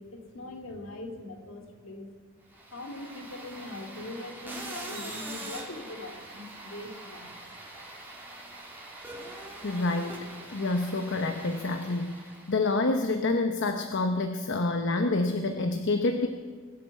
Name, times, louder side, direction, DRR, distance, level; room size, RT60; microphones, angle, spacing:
voice 1, 0.0-2.1 2.7-7.3, left 2 dB, 75° left, 4 dB, 2.5 m, -41 dB
sound 1, 2.5-12.7, right 2 dB, 10° right, 3.1 m, -43 dB
voice 2, 9.6-12.2 12.5-16.3, left 2 dB, 60° left, 6 dB, 0.9 m, -28 dB
21.0 x 7.6 x 8.3 m, 1.5 s
head